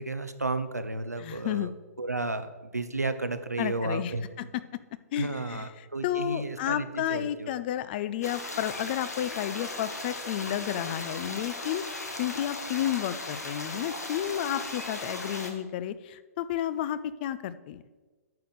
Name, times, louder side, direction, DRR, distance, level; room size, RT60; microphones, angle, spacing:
voice 1, 0.0-1.7 2.0-4.2 5.1-7.5, right 3 dB, 90° right, 10 dB, 0.7 m, -33 dB
voice 2, 1.2-1.7 3.6-4.8 5.1-11.8 12.2-17.8, left 11 dB, 40° left, 14 dB, 0.5 m, -32 dB
sound 1, 8.2-15.5, left 2 dB, 80° left, 1.5 m, -37 dB
9.3 x 5.1 x 6.6 m, 1.3 s
figure-of-eight pair, 120°, 8 cm